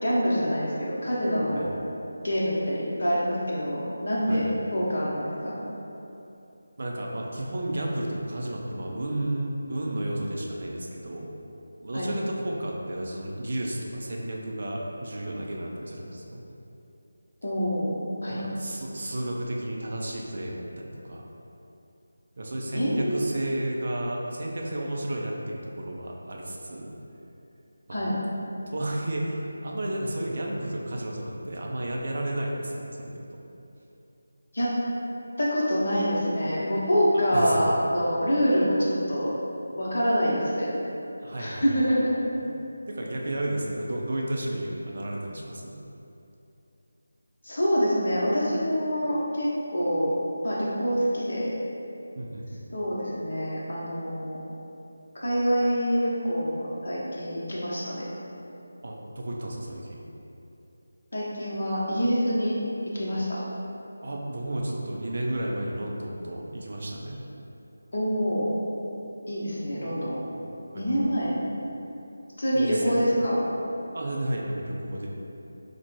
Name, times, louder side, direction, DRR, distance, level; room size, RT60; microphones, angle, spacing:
voice 1, 0.0-1.6 2.2-5.6 11.9-12.1 17.4-18.4 22.7-23.4 27.9-28.1 34.5-34.7 35.4-39.3 39.8-40.7 41.4-42.1 47.4-50.1 50.4-51.5 52.7-54.4 55.1-58.1 61.1-62.6 62.9-63.4 67.9-68.5 69.3-70.2 70.7-71.3 72.4-73.4, equal, 50° left, -6 dB, 0.8 m, -26 dB
voice 2, 1.5-1.8 4.3-4.5 6.8-11.3 11.8-16.4 18.3-21.2 22.4-26.9 27.9-28.0 28.7-33.4 37.1-37.6 41.2-41.8 42.9-45.8 52.2-52.4 58.8-60.1 64.0-67.2 70.7-71.3 72.5-73.0 73.9-75.1, right 1 dB, 45° right, -1 dB, 0.4 m, -32 dB
4.5 x 2.1 x 2.9 m, 2.9 s
figure-of-eight pair, 160°, 0 cm